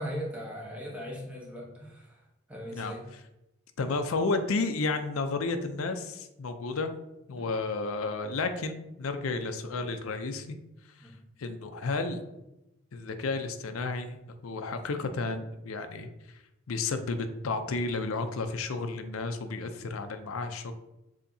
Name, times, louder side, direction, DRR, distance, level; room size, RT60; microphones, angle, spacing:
voice 1, 0.0-2.2 2.5-3.1 4.2-4.3 7.4-7.5 11.0-11.2, equal, 5° right, -2 dB, 0.9 m, -39 dB
voice 2, 3.8-6.9 7.3-10.6 11.0-11.1 11.4-12.2 12.9-14.2 14.4-16.1 16.7-20.7, left 3 dB, 90° left, 8 dB, 0.5 m, -32 dB
6.8 x 2.8 x 2.7 m, 0.91 s
head